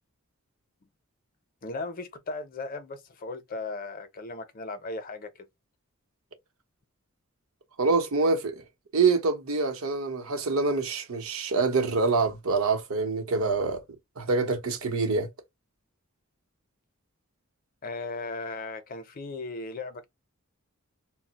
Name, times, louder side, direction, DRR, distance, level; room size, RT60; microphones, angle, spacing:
voice 1, 1.6-5.5 17.8-20.1, left 3 dB, 40° left, 0.5 m, -37 dB
voice 2, 7.8-8.6 8.9-13.8 14.2-15.3, right 4 dB, 75° right, 0.7 m, -25 dB
2.3 x 2.0 x 3.9 m
head